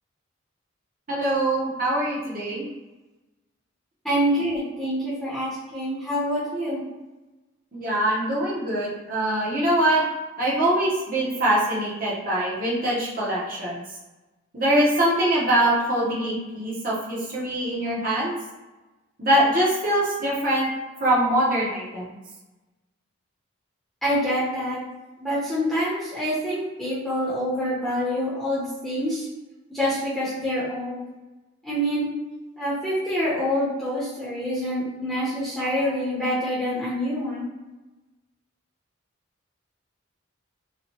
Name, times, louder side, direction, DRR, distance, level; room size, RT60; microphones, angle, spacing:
voice 1, 1.1-2.7 7.7-10.0 10.4-13.8 14.5-18.3 19.2-20.7 21.0-22.1, right 1 dB, 45° right, -6 dB, 0.9 m, -23 dB
voice 2, 4.0-6.8 24.0-24.8 25.2-29.3 29.7-31.0 31.6-32.1 32.6-37.5, equal, ahead, -11 dB, 0.8 m, -26 dB
2.9 x 2.3 x 2.9 m, 1.1 s
head